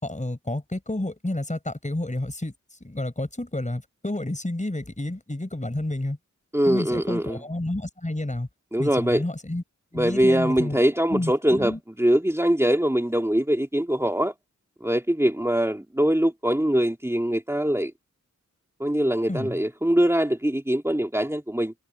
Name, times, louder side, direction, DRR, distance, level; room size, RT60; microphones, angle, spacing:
voice 1, 0.0-2.5 2.8-6.2 6.7-8.5 8.8-9.6 9.9-10.8 11.1-11.8 19.3-19.6, left 1 dB, 25° left, 5.1 m, -30 dB
voice 2, 6.5-7.4 8.7-9.2 10.0-14.3 14.8-17.9 18.8-21.7, right 1 dB, 10° right, 2.9 m, -23 dB
wide cardioid pair, 60°, 31 cm